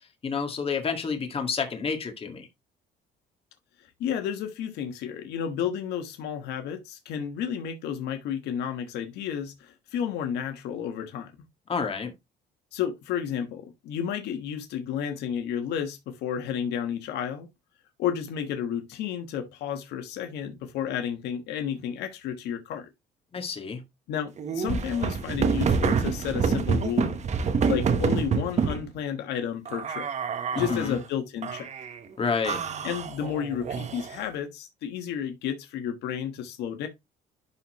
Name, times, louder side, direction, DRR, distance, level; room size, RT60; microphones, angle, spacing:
voice 1, 0.2-2.5 11.7-12.1 23.3-23.8 30.5-31.0 32.2-32.6, left 5 dB, 35° left, 2.0 m, -29 dB
voice 2, 3.8-11.3 12.7-17.5 18.0-22.9 24.1-27.2 27.7-30.1 30.6-31.7 32.8-36.9, left 8 dB, 80° left, 1.3 m, -32 dB
sound 1, 24.4-28.8 29.7-31.0 31.4-32.0 32.4-34.3, right 5 dB, 45° right, 1.3 m, -27 dB
11.0 x 4.2 x 3.1 m
cardioid pair, 110°, 17 cm